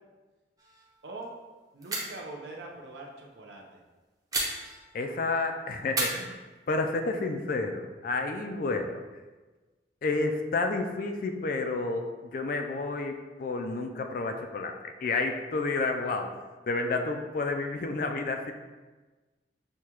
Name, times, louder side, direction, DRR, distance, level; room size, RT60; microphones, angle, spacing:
sound 1, 0.6-1.0 1.2-1.3 1.8-2.3 4.3-5.2 5.9-7.0, right 2 dB, 20° right, 0.7 m, -34 dB
voice 1, 1.7-3.6, right 2 dB, 65° right, 0 dB, 0.7 m, -42 dB
voice 2, 4.9-6.3 6.7-9.0 10.0-16.4 16.7-18.5, left 3 dB, 50° left, 5 dB, 0.4 m, -30 dB
6.5 x 2.3 x 2.9 m, 1.2 s
head